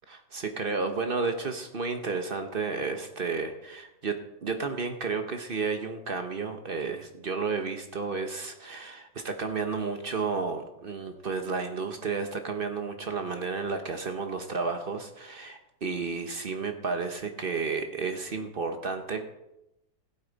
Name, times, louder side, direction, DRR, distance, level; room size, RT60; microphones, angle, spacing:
voice 1, 0.1-4.2 4.4-19.2, right 4 dB, 40° right, 6 dB, 0.8 m, -32 dB
15.5 x 8.7 x 4.0 m, 0.89 s
omnidirectional pair, 2.0 m